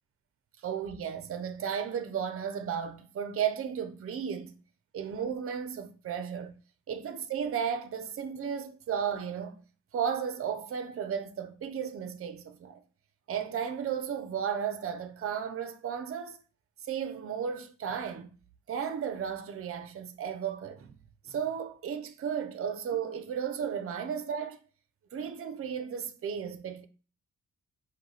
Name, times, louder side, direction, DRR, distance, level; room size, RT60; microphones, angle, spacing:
voice 1, 0.6-4.5 4.9-6.5 6.9-9.5 9.9-12.8 13.3-16.4 16.8-18.3 18.7-21.0 21.2-24.6 25.1-26.9, right 8 dB, 50° right, 0.8 m, -34 dB
4.9 x 2.3 x 4.0 m
cardioid pair, 90°, 30 cm